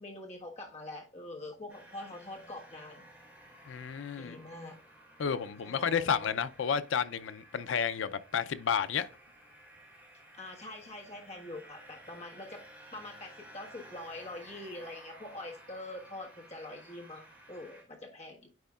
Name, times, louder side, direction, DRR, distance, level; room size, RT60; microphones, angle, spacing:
voice 1, 0.0-3.0 4.2-4.8 5.6-6.3 10.3-12.6 12.9-18.5, left 2 dB, 35° left, 1.4 m, -44 dB
sound 1, 1.7-17.8, right 1 dB, 10° right, 3.0 m, -55 dB
voice 2, 3.7-4.4 5.2-9.1, left 7 dB, 85° left, 0.4 m, -31 dB
9.3 x 4.4 x 2.3 m
head